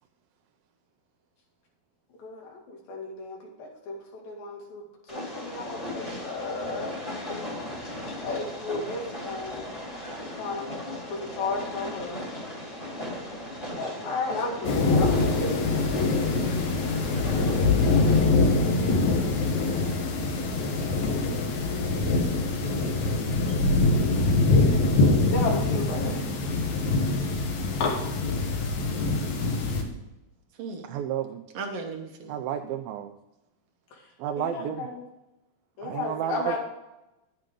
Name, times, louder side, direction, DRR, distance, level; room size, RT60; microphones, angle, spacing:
voice 1, 2.2-4.8 5.1-6.9 8.2-9.7 10.2-10.7 11.1-12.2 13.7-16.2 18.0-18.1 25.3-26.3 34.4-35.0 35.8-36.6, left 3 dB, 75° left, -1 dB, 4.0 m, -34 dB
Train, 5.1-18.2, left 1 dB, 15° left, 1.5 m, -37 dB
voice 2, 13.7-14.1 30.9-31.4 32.3-33.1 34.2-34.9 35.8-36.6, right 10 dB, 85° right, 4 dB, 2.5 m, -32 dB
sound 1, 14.6-29.8, left 3 dB, 60° left, 2.5 m, -24 dB
voice 3, 18.1-19.0 30.6-30.9 31.5-32.3, right 4 dB, 65° right, 3 dB, 1.5 m, -37 dB
11.0 x 9.0 x 3.7 m, 0.95 s
omnidirectional pair, 4.2 m